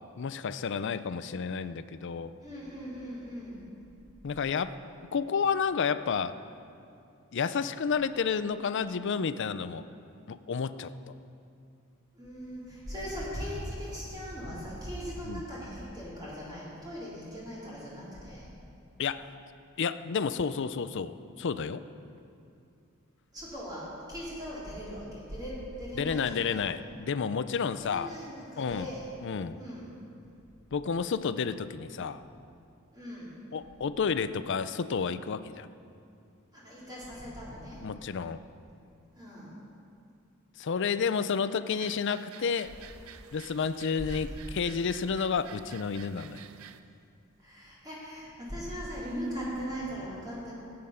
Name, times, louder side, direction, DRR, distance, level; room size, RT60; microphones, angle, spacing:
voice 1, 0.2-2.3 4.2-4.8 5.1-6.4 7.3-9.8 10.3-10.9 15.3-15.4 19.0-19.3 19.8-21.8 26.0-28.1 28.6-28.9 29.2-29.6 30.7-32.2 33.5-35.7 37.8-38.4 40.6-42.7 43.3-46.5, left 6 dB, 60° left, 13 dB, 0.5 m, -31 dB
voice 2, 2.4-3.7 12.1-18.5 23.3-26.7 27.8-29.2 29.5-29.9 32.9-33.4 36.5-37.8 39.1-39.7 44.0-44.2 47.4-50.5, equal, 20° right, -8 dB, 3.3 m, -39 dB
sound 1, 41.7-46.8, right 8 dB, 80° right, 0.6 m, -51 dB
16.0 x 8.7 x 5.7 m, 2.5 s
head